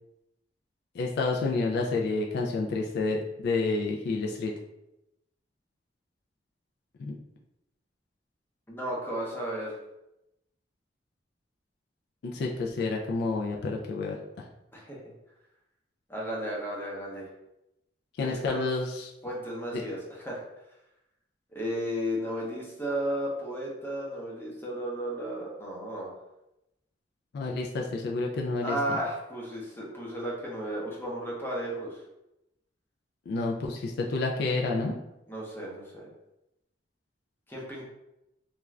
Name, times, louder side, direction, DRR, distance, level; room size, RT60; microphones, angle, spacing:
voice 1, 0.9-4.5 7.0-7.2 12.2-14.2 18.2-19.1 19.7-19.8 27.3-29.0 33.3-35.0, left 3 dB, 65° left, 0 dB, 0.3 m, -29 dB
voice 2, 8.7-9.8 14.7-15.0 16.1-17.3 18.2-18.7 19.2-20.4 21.5-26.1 28.6-32.0 35.3-36.1 37.5-37.9, equal, 10° left, -4 dB, 0.7 m, -34 dB
2.4 x 2.2 x 3.1 m, 0.89 s
head